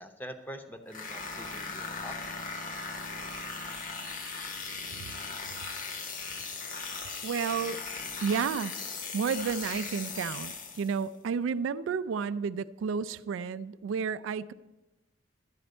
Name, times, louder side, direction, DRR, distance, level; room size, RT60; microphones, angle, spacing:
voice 1, 0.0-2.2, equal, 10° left, 7 dB, 0.6 m, -44 dB
sound 1, 0.9-11.1, left 4 dB, 45° left, 0.9 m, -38 dB
voice 2, 7.2-7.8 8.2-8.8 9.1-14.5, right 6 dB, 85° right, 15 dB, 0.3 m, -31 dB
11.5 x 4.3 x 8.0 m, 1.1 s
head